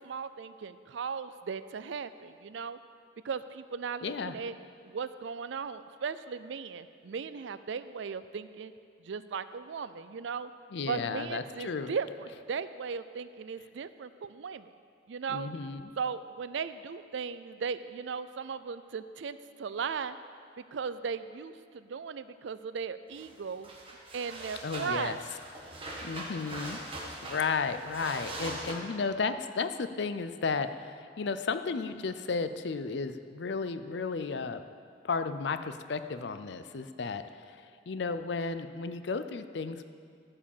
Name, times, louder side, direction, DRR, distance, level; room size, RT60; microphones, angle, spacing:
voice 1, 0.0-2.8 3.2-4.5 4.8-8.7 9.0-10.5 10.9-14.7 15.1-15.5 16.0-20.2 20.7-23.7 24.1-25.2, right 6 dB, 70° right, 13 dB, 0.4 m, -37 dB
voice 2, 4.0-4.4 10.7-11.9 15.3-15.9 24.6-25.2 26.0-26.8 27.2-34.6 35.0-39.8, left 4 dB, 60° left, 11 dB, 0.5 m, -33 dB
sound 1, 23.1-23.3 23.6-28.7, right 1 dB, 30° right, 1.4 m, -41 dB
14.5 x 4.9 x 7.2 m, 2.2 s
head